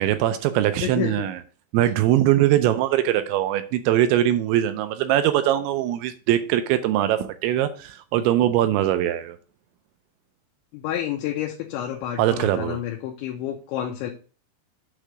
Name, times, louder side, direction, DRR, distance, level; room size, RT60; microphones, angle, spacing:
voice 1, 0.0-1.4 1.7-9.4 12.2-12.8, right 12 dB, 80° right, 2.7 m, -21 dB
voice 2, 0.8-1.3 1.8-1.9 10.7-14.1, left 11 dB, 80° left, 3.0 m, -29 dB
8.2 x 3.3 x 6.1 m
omnidirectional pair, 5.7 m